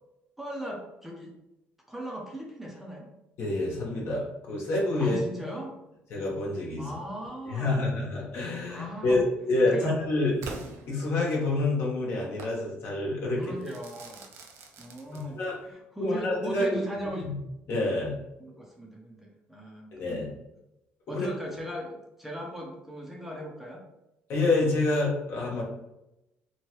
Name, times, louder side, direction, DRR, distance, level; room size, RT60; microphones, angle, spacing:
voice 1, 0.4-1.3 1.9-3.1 5.0-5.8 6.8-7.9 8.7-9.2 9.7-10.0 13.4-14.3 14.8-17.3 18.4-20.3 21.1-23.8, equal, 5° right, -1 dB, 0.6 m, -38 dB
voice 2, 3.4-5.2 6.1-6.9 7.5-10.5 10.9-13.4 15.1-15.6 16.0-16.8 17.2-17.4 17.7-18.2 19.9-20.3 21.1-21.3 24.3-25.6, left 2 dB, 60° left, -3 dB, 1.0 m, -27 dB
Crackle / Fireworks, 10.4-11.6 12.4-12.6 13.6-15.6, right 3 dB, 70° right, 0.5 m, -44 dB
3.0 x 2.2 x 3.0 m, 0.91 s
cardioid pair, 100°, 5 cm